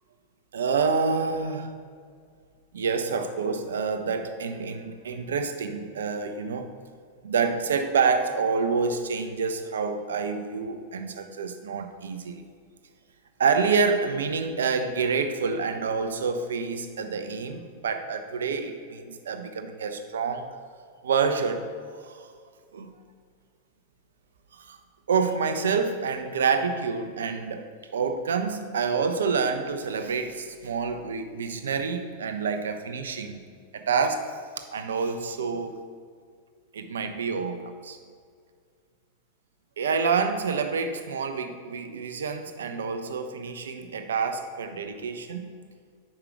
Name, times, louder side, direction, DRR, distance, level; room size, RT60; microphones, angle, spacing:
voice 1, 0.5-1.7 2.7-6.7 7.2-12.4 13.4-20.5 21.0-22.2 22.7-22.9 24.5-24.8 25.1-33.4 33.7-34.3 34.7-35.7 36.7-38.0 39.8-45.5, right 5 dB, 70° right, 7 dB, 0.5 m, -28 dB
5.1 x 4.7 x 4.9 m, 2.1 s
figure-of-eight pair, 90°, 0 cm